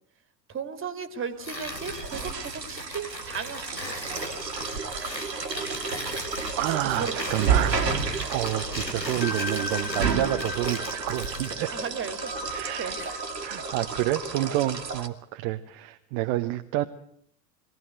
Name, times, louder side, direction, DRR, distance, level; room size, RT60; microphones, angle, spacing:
voice 1, 0.5-3.9 6.7-7.5 11.6-13.2 14.4-14.6, right 6 dB, 25° right, 12 dB, 2.6 m, -36 dB
Tearing, 1.4-11.6, left 1 dB, 90° left, 2.6 m, -38 dB
sound 1, 1.5-15.1, right 5 dB, 75° right, 2.1 m, -31 dB
voice 2, 4.8-5.4 6.6-8.0 8.3-11.7 12.5-12.9 13.4-16.8, right 15 dB, 45° right, 7 dB, 1.1 m, -29 dB
sound 2, 9.0-15.0, left 2 dB, 20° left, 4.8 m, -38 dB
22.5 x 17.0 x 7.8 m, 0.67 s
figure-of-eight pair, 75°, 50 cm